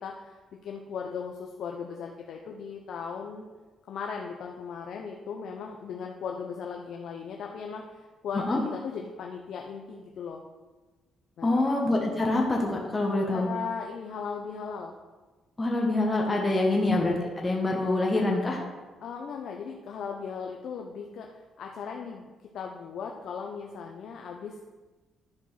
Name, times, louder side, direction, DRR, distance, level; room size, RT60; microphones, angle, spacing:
voice 1, 0.0-3.5 3.9-10.4 11.4-11.7 13.3-14.9 19.0-24.6, left 6 dB, 70° left, 2 dB, 0.8 m, -38 dB
voice 2, 11.4-13.5 15.6-18.6, left 2 dB, 20° left, -1 dB, 1.5 m, -25 dB
11.0 x 4.5 x 5.7 m, 1.3 s
cardioid pair, 90°, 0 cm